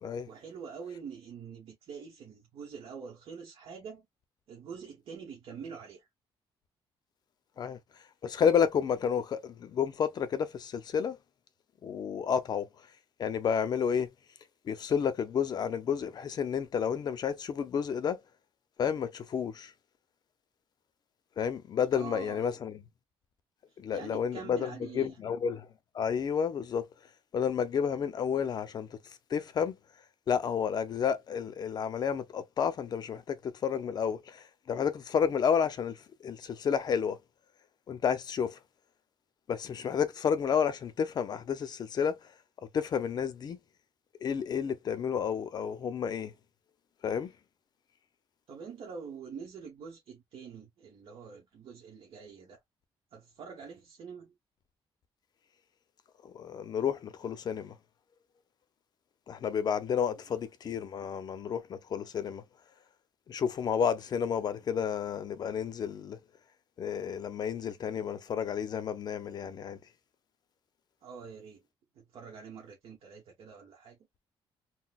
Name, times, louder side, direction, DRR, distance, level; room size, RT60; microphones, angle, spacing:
voice 1, 0.3-4.1 4.5-6.1 21.9-22.6 23.7-25.2 48.5-52.6 53.1-54.3 71.0-71.6 71.9-74.0, right 6 dB, 65° right, 1.0 m, -45 dB
voice 2, 8.2-11.2 11.8-12.7 13.2-14.1 14.6-18.2 18.8-19.7 21.4-22.8 23.8-25.7 25.9-26.9 27.3-29.0 29.3-29.7 30.3-37.2 37.9-38.6 39.5-42.2 42.6-43.6 44.2-46.3 47.0-47.3 56.2-57.8 59.3-62.4 63.3-66.2 66.8-69.8, left 7 dB, 45° left, 0.6 m, -31 dB
3.9 x 2.1 x 2.3 m
cardioid pair, 150°, 10 cm